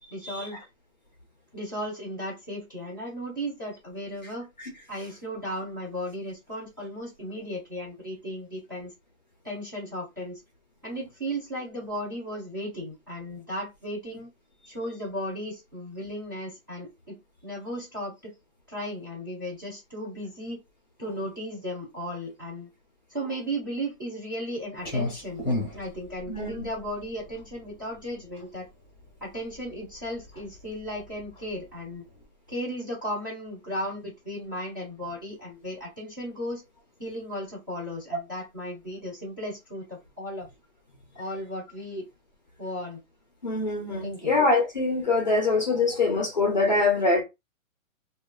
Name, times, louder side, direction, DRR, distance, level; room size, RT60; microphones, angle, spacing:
voice 1, 0.1-0.6 1.5-4.5 4.9-8.9 9.4-10.4 10.8-14.3 14.7-17.2 17.4-18.3 18.7-20.6 21.0-22.7 23.1-25.4 25.7-28.6 29.2-32.0 32.5-36.6 37.0-40.5 41.1-42.1 42.6-43.0 44.0-44.4, equal, 15° right, 0.6 m, -35 dB
Clock, 24.8-32.2, left 2 dB, 15° left, 0.8 m, -36 dB
voice 2, 26.3-26.7 43.4-47.2, left 3 dB, 35° left, 0.5 m, -24 dB
2.9 x 2.2 x 2.2 m
hypercardioid pair, 175°, 42 cm